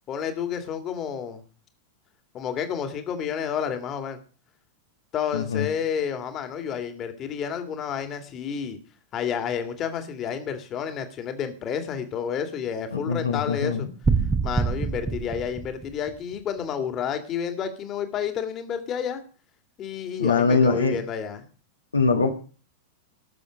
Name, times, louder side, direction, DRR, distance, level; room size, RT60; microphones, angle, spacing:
voice 1, 0.1-1.4 2.3-4.2 5.1-8.8 9.1-13.9 14.4-19.2 19.8-21.4, left 8 dB, 30° left, 2.2 m, -30 dB
voice 2, 5.3-5.7 12.9-13.9 20.2-21.0 21.9-22.3, left 4 dB, 75° left, 1.6 m, -22 dB
sound 1, 14.0-16.2, right 5 dB, 15° right, 1.1 m, -25 dB
19.0 x 7.0 x 5.1 m
figure-of-eight pair, 90°, 0 cm